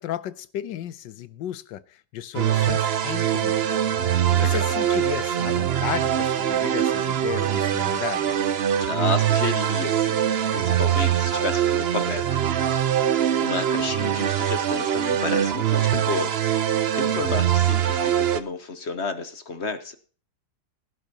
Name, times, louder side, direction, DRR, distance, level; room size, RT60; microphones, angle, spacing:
voice 1, 0.0-3.7 4.1-8.4, left 11 dB, 80° left, 1.4 m, -34 dB
sound 1, 2.3-18.4, right 10 dB, 65° right, 0.6 m, -23 dB
voice 2, 4.0-4.6 8.8-10.2 10.5-12.3 12.5-16.3 16.6-20.0, left 4 dB, 40° left, 1.2 m, -31 dB
17.0 x 11.0 x 2.9 m
omnidirectional pair, 2.0 m